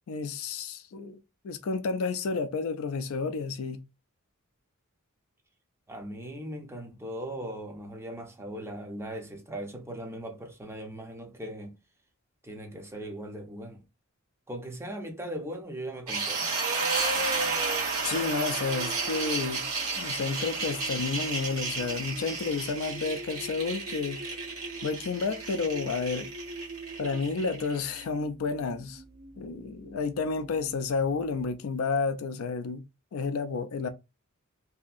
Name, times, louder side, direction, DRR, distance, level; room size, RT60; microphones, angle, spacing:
voice 1, 0.1-1.2 1.4-3.8 18.0-19.7 20.0-24.2 24.8-26.3 27.0-29.0 29.4-32.8 33.1-33.9, left 4 dB, 75° left, 0.4 m, -31 dB
voice 2, 5.9-11.8 12.4-13.8 14.5-16.5, right 1 dB, 10° right, 0.6 m, -39 dB
sound 1, 16.1-28.0, right 4 dB, 85° right, 1.2 m, -32 dB
sound 2, 16.9-31.5, right 2 dB, 65° right, 0.7 m, -46 dB
2.7 x 2.6 x 2.4 m
head